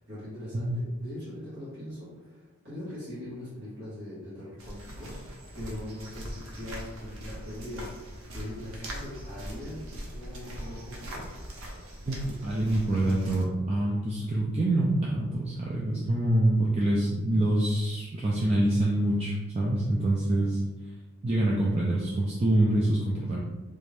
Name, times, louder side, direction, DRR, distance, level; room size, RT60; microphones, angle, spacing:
voice 1, 0.0-11.2, left 1 dB, 50° right, -12 dB, 1.4 m, -41 dB
sound 1, 4.6-13.5, equal, 75° right, 0.7 m, -41 dB
voice 2, 12.1-20.6 21.2-23.4, right 1 dB, 30° right, -4 dB, 0.3 m, -26 dB
3.3 x 2.6 x 3.3 m, 1.1 s
head